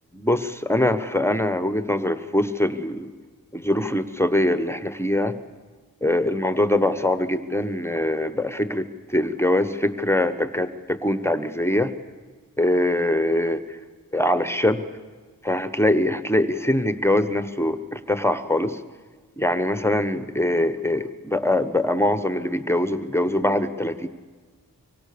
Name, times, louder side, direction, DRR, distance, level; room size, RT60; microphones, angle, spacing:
voice 1, 0.1-3.1 3.5-5.4 6.0-11.9 12.6-13.8 14.1-14.8 15.4-18.8 19.4-24.1, left 1 dB, 5° left, 11 dB, 1.2 m, -23 dB
25.0 x 24.5 x 6.9 m, 1.5 s
cardioid pair, 65°, 35 cm